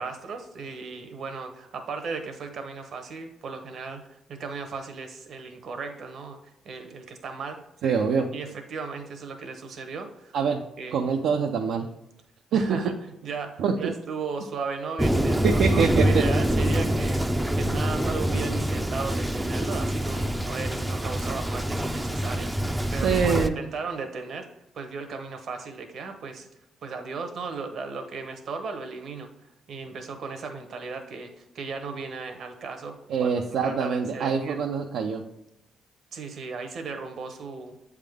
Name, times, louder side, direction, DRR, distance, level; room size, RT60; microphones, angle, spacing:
voice 1, 0.0-7.6 8.3-10.3 10.8-11.0 12.5-12.9 13.2-17.3 17.5-24.5 24.7-26.5 26.8-33.3 33.6-34.6 36.1-37.8, right 4 dB, 60° right, 6 dB, 0.9 m, -36 dB
voice 2, 7.8-8.3 10.3-10.6 10.9-11.9 12.5-12.9 13.6-13.9 15.4-16.2 22.9-23.6 33.1-35.2, right 6 dB, 80° right, 2 dB, 0.4 m, -25 dB
Thunder, 15.0-23.5, right 1 dB, 10° right, 0.4 m, -25 dB
7.4 x 3.6 x 3.5 m, 0.89 s
cardioid pair, 90°, 0 cm